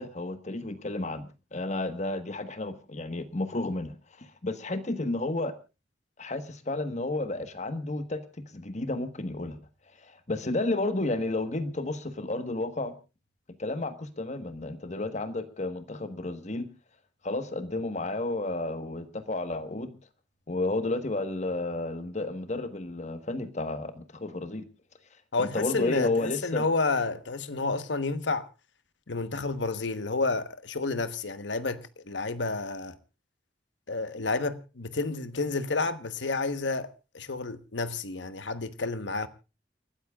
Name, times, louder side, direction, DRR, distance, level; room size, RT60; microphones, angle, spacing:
voice 1, 0.0-5.5 6.2-8.2 8.5-9.6 10.0-12.9 13.5-16.7 17.2-19.9 20.5-24.6 25.4-26.6, left 2 dB, 40° left, 1.4 m, -32 dB
voice 2, 25.3-28.5 29.1-33.0 33.9-39.3, left 3 dB, 80° left, 1.2 m, -30 dB
29.0 x 13.5 x 2.4 m
head